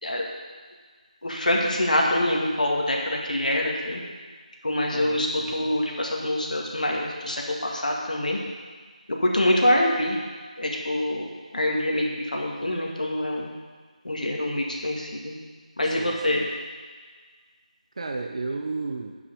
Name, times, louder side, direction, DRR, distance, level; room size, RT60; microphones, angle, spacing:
voice 1, 1.2-4.0 4.6-5.3 5.5-8.4 9.2-10.2 10.6-13.5 14.0-15.3 15.8-16.4, left 1 dB, 75° left, -1 dB, 2.1 m, -25 dB
voice 2, 4.9-5.7 15.8-16.5 18.0-19.1, right 3 dB, 50° right, 3 dB, 0.7 m, -33 dB
7.7 x 6.0 x 6.9 m, 1.5 s
figure-of-eight pair, 165°, 4 cm